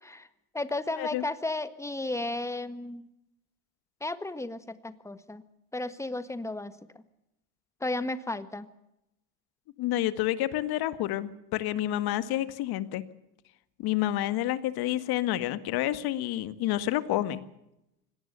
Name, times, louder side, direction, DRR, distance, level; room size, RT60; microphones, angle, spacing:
voice 1, 0.5-3.1 4.0-5.4 5.7-6.7 7.8-8.7, left 2 dB, 5° left, 12 dB, 1.6 m, -33 dB
voice 2, 9.8-13.0 13.8-17.4, left 14 dB, 55° left, 12 dB, 1.9 m, -29 dB
24.5 x 18.5 x 6.9 m, 0.85 s
supercardioid pair, 105°, 45 cm